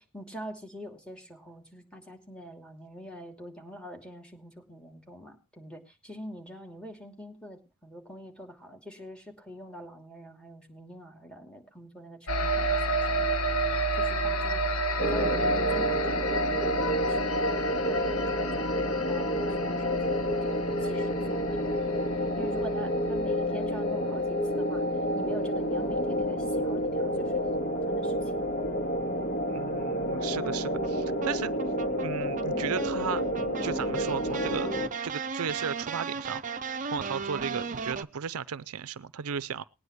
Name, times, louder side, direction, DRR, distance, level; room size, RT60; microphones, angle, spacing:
voice 1, 0.0-13.3 13.9-14.6 15.0-18.8 19.1-22.0 22.4-24.8 25.1-28.5, equal, 5° left, 2.8 m, -45 dB
sound 1, 12.3-24.1, right 1 dB, 75° left, 1.6 m, -30 dB
sound 2, 15.0-34.9, equal, 45° left, 1.9 m, -29 dB
voice 2, 29.5-31.5 32.0-33.2 33.6-34.7 35.0-36.4 36.9-39.6, right 7 dB, 75° right, 0.5 m, -35 dB
sound 3, 30.3-38.0, right 5 dB, 35° right, 0.6 m, -36 dB
20.0 x 9.6 x 3.1 m
head